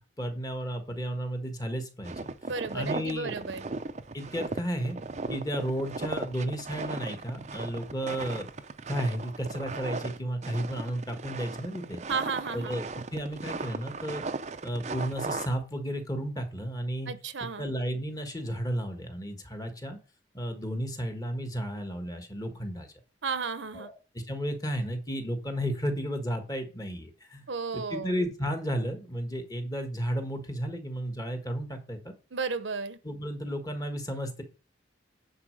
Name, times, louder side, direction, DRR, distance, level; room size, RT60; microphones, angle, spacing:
voice 1, 0.2-2.3 2.7-3.4 4.1-5.0 5.3-8.5 8.9-12.0 12.5-12.8 13.1-14.2 14.6-17.1 17.6-20.0 20.3-22.9 23.7-23.9 24.3-27.4 27.7-32.0 33.0-34.4, equal, 20° left, 1.4 m, -33 dB
sound 1, 2.0-15.5, right 3 dB, 35° right, 0.5 m, -37 dB
voice 2, 2.5-3.7 12.1-12.8 17.1-17.7 23.2-23.9 27.5-28.1 32.3-33.0, right 4 dB, 80° right, 0.9 m, -33 dB
9.7 x 4.1 x 6.4 m
head